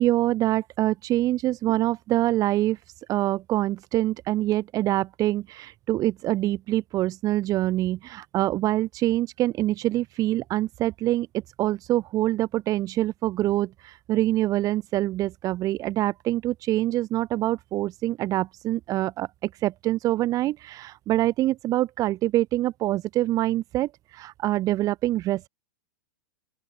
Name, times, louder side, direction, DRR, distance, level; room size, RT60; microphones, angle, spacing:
voice 1, 0.0-2.8 3.1-11.3 11.6-25.5, right 15 dB, 35° right, 5.9 m, -25 dB
open air
hypercardioid pair, 125°, 10 cm